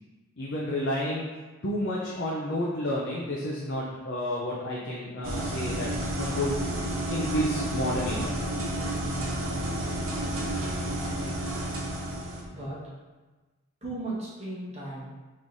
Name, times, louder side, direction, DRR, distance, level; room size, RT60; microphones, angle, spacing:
voice 1, 0.4-1.3 1.6-5.9 6.2-6.6 7.1-8.3, left 1 dB, 50° left, -4 dB, 0.5 m, -30 dB
sound 1, 5.2-12.4, right 1 dB, 70° right, 0.9 m, -31 dB
voice 2, 12.4-12.9 13.8-15.1, right 2 dB, 30° right, -8 dB, 1.3 m, -36 dB
5.3 x 3.2 x 2.6 m, 1.2 s
head